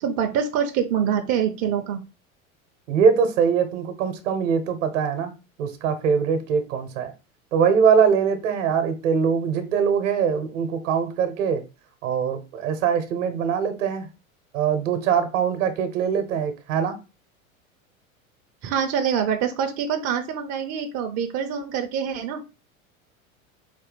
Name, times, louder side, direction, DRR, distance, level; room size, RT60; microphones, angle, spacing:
voice 1, 0.0-2.0 18.6-22.4, right 8 dB, 35° right, 0.7 m, -25 dB
voice 2, 2.9-5.3 5.6-7.1 7.5-11.6 12.0-14.1 14.5-17.0, right 6 dB, 60° right, 1.0 m, -22 dB
4.4 x 2.7 x 4.0 m
figure-of-eight pair, 80°, 42 cm